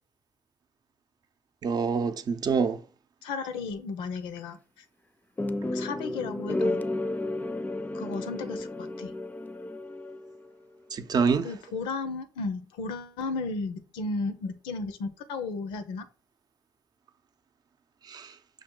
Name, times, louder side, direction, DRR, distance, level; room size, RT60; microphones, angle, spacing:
voice 1, 1.6-2.8 10.9-11.5 18.1-18.3, right 5 dB, 50° right, 0.6 m, -26 dB
voice 2, 3.2-4.6 5.7-6.8 7.9-9.1 11.4-16.1, left 4 dB, 85° left, 0.6 m, -34 dB
sound 1, 5.4-10.5, left 2 dB, 20° left, 0.5 m, -32 dB
5.5 x 2.5 x 3.8 m
supercardioid pair, 65°, 9 cm